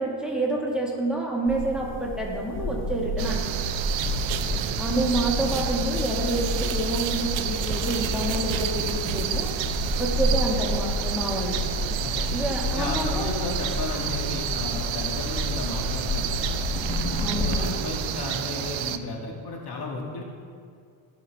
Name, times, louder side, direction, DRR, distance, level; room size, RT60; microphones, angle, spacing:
voice 1, 0.0-3.4 4.8-9.5 10.0-11.6 12.3-13.3 17.2-17.7, right 1 dB, ahead, -2 dB, 1.5 m, -28 dB
sound 1, 1.5-17.8, left 2 dB, 25° left, 1.0 m, -30 dB
sound 2, 3.2-19.0, right 11 dB, 70° right, 0.6 m, -30 dB
voice 2, 4.0-4.8 12.0-12.3 12.7-16.7 17.1-20.2, left 3 dB, 50° left, 0 dB, 1.6 m, -34 dB
15.5 x 5.9 x 3.3 m, 2.3 s
cardioid pair, 100°, 49 cm